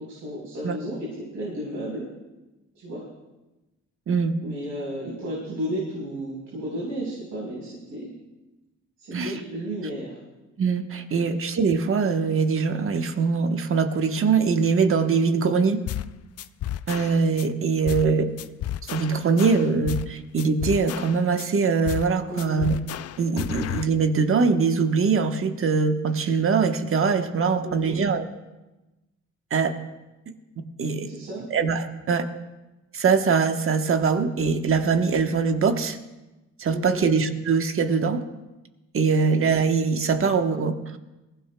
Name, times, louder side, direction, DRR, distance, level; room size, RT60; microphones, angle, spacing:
voice 1, 0.0-2.0 2.7-3.0 4.4-8.1 9.1-10.1 11.1-11.2 22.3-22.6 27.6-28.0 31.0-31.5 36.7-37.0, right 1 dB, 75° right, -5 dB, 4.3 m, -33 dB
voice 2, 10.6-15.8 16.9-18.3 18.8-22.7 23.2-28.2 29.5-29.8 30.8-31.1 31.5-32.3 32.9-36.0 36.6-38.2 38.9-41.0, right 5 dB, 45° right, 7 dB, 1.2 m, -22 dB
sound 1, 15.9-16.1 16.4-17.5 17.9-18.1 18.4-20.1 20.4-21.5 21.9-22.1 22.4-23.9, left 12 dB, 55° left, 0.5 m, -32 dB
21.5 x 16.0 x 2.3 m, 1.0 s
cardioid pair, 90°, 30 cm